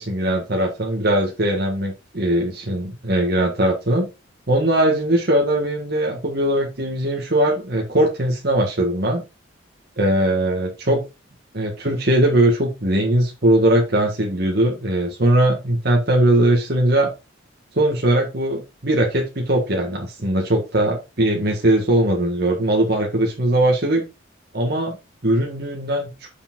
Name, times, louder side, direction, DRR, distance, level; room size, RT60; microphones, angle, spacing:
voice 1, 0.0-4.1 4.5-9.2 10.0-11.0 11.5-17.1 17.7-24.0 24.5-25.0 25.2-26.3, right 1 dB, 50° right, -1 dB, 1.6 m, -20 dB
6.8 x 4.9 x 3.8 m, 0.26 s
head